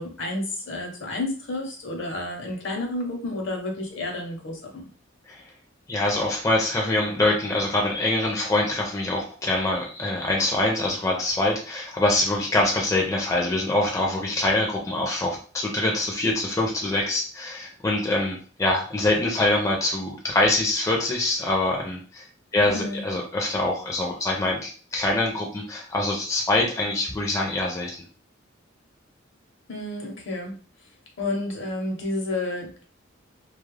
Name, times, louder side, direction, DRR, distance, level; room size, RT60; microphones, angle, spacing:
voice 1, 0.0-4.9 22.7-23.1 29.7-30.5 31.2-32.8, left 2 dB, 65° left, 1 dB, 0.8 m, -30 dB
voice 2, 5.9-22.2 22.5-28.0, left 2 dB, 15° left, -1 dB, 0.4 m, -24 dB
2.3 x 2.0 x 3.1 m, 0.41 s
head